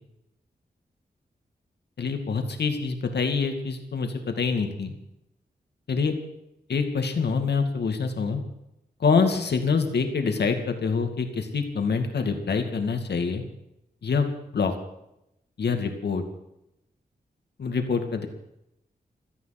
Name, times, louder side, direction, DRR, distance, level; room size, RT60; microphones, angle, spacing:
voice 1, 2.0-4.9 5.9-6.1 6.7-8.4 9.0-13.4 14.0-14.3 14.5-14.7 15.6-16.2 17.6-18.3, left 5 dB, 80° left, 6 dB, 2.3 m, -25 dB
17.0 x 14.0 x 6.0 m, 0.85 s
wide cardioid pair, 130°, 17 cm